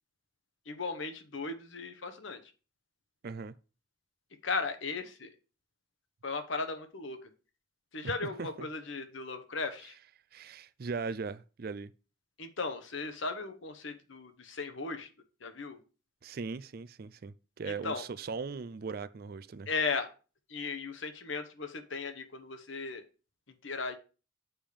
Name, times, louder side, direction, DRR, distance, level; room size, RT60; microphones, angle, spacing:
voice 1, 0.7-2.4 4.4-5.3 6.2-7.3 7.9-9.9 12.4-15.1 15.4-15.8 17.8-18.0 19.7-20.1 20.5-23.0 23.6-24.0, left 4 dB, 70° left, 1.2 m, -36 dB
voice 2, 3.2-3.6 8.0-8.7 10.3-11.9 16.2-19.7, right 4 dB, 45° right, 0.4 m, -39 dB
7.3 x 5.1 x 5.2 m
head